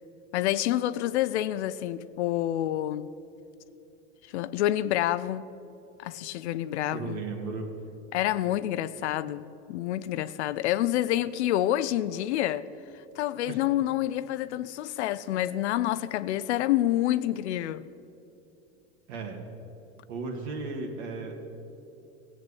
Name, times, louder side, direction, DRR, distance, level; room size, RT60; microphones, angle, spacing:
voice 1, 0.3-3.1 4.3-5.4 6.0-7.2 8.1-12.7 13.2-17.8, left 13 dB, 75° left, 0.6 m, -28 dB
voice 2, 6.9-7.8 13.5-13.6 19.1-19.4 20.1-21.4, right 3 dB, 70° right, 2.1 m, -35 dB
15.5 x 7.8 x 8.5 m
hypercardioid pair, 110°, 34 cm